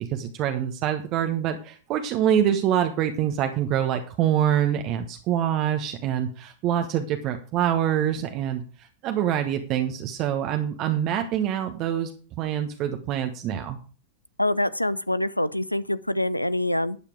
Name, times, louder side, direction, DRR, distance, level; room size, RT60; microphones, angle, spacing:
voice 1, 0.0-12.1 12.4-13.8, right 10 dB, 40° right, 1.2 m, -25 dB
voice 2, 14.4-17.0, left 1 dB, 90° left, 0.6 m, -25 dB
12.5 x 8.9 x 4.8 m
figure-of-eight pair, 90°, 0 cm